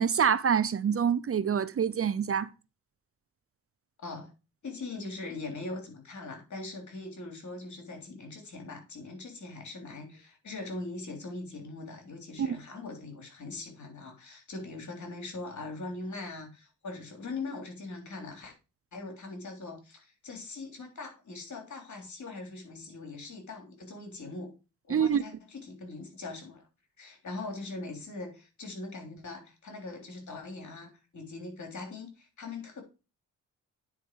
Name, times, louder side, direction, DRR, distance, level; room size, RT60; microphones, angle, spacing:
voice 1, 0.0-2.5 12.4-12.6 24.9-25.2, right 7 dB, 45° right, 0.6 m, -26 dB
voice 2, 4.0-4.3 4.6-18.5 18.9-24.5 24.9-26.6 27.0-32.8, left 3 dB, 60° left, 3.5 m, -41 dB
9.6 x 4.9 x 4.6 m
cardioid pair, 70°, 34 cm